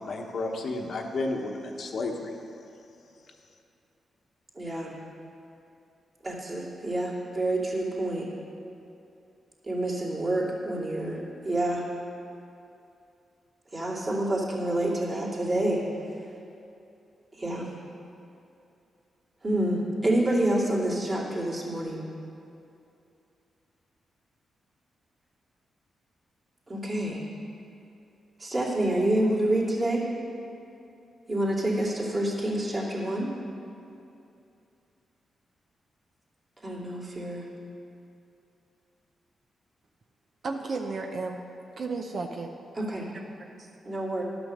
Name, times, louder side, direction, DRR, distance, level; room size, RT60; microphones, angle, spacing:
voice 1, 0.0-2.3, left 2 dB, 65° left, 2 dB, 1.1 m, -32 dB
voice 2, 4.6-4.9 6.2-8.2 9.6-11.8 13.7-15.8 17.4-17.7 19.4-22.0 26.7-27.2 28.4-30.0 31.3-33.3 36.6-37.4 42.8-43.1 43.8-44.2, right 1 dB, 35° right, -5 dB, 2.6 m, -28 dB
voice 3, 40.4-41.4 41.8-42.5 43.1-43.7, right 3 dB, 60° right, 3 dB, 0.6 m, -34 dB
11.5 x 6.0 x 6.5 m, 2.7 s
cardioid pair, 75°, 0 cm